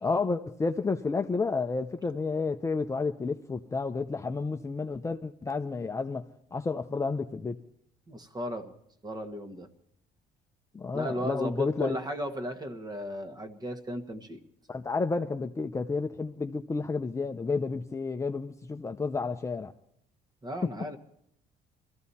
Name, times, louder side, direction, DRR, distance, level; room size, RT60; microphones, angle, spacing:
voice 1, 0.0-6.2 6.5-7.6 10.7-12.0 14.7-19.7 20.6-20.7, left 4 dB, 20° left, 6 dB, 0.6 m, -31 dB
voice 2, 8.1-8.7 9.0-9.7 10.9-14.4 20.4-21.0, equal, 25° right, 9 dB, 1.4 m, -35 dB
22.5 x 14.5 x 4.2 m, 0.70 s
cardioid pair, 110°, 17 cm